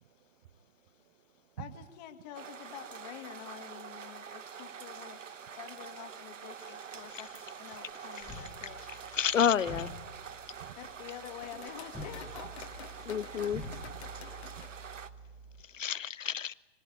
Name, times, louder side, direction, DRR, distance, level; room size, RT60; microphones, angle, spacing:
voice 1, 0.0-1.8 10.6-10.8 14.6-15.9, right 11 dB, 40° right, 12 dB, 0.9 m, -52 dB
voice 2, 1.6-8.8 10.8-12.5, left 10 dB, 35° left, 7 dB, 2.0 m, -48 dB
sound 1, 2.3-15.1, right 7 dB, 80° right, 1.1 m, -46 dB
sound 2, 7.7-14.7, left 8 dB, 60° left, 1.5 m, -52 dB
sound 3, 8.2-15.6, equal, 5° left, 1.8 m, -48 dB
voice 3, 9.1-9.9 13.1-13.6 15.7-16.5, left 8 dB, 80° left, 20 dB, 0.7 m, -29 dB
24.5 x 19.0 x 8.7 m, 1.3 s
figure-of-eight pair, 130°, 37 cm